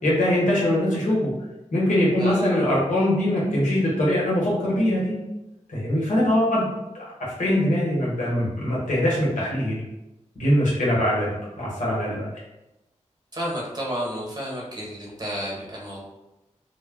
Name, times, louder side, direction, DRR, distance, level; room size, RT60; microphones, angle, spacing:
voice 1, 0.0-1.3 1.7-5.2 5.7-6.7 6.9-7.1 7.4-9.8 10.4-11.3 11.6-12.3, left 1 dB, 85° left, -6 dB, 1.0 m, -22 dB
voice 2, 2.2-2.6 13.3-16.0, equal, 35° right, -4 dB, 1.1 m, -31 dB
2.2 x 2.1 x 3.5 m, 0.96 s
cardioid pair, 50°, 13 cm